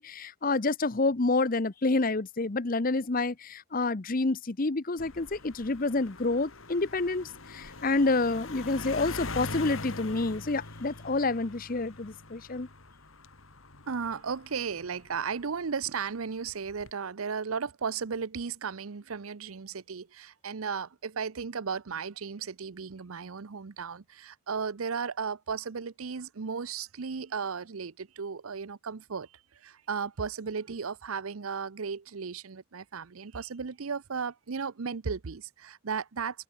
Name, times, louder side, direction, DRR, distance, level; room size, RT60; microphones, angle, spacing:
voice 1, 0.0-12.7, left 3 dB, 40° left, 0.8 m, -28 dB
sound 1, 5.0-15.7 16.5-16.9, left 3 dB, 75° left, 3.1 m, -43 dB
voice 2, 13.9-36.4, right 5 dB, 85° right, 0.7 m, -35 dB
open air
head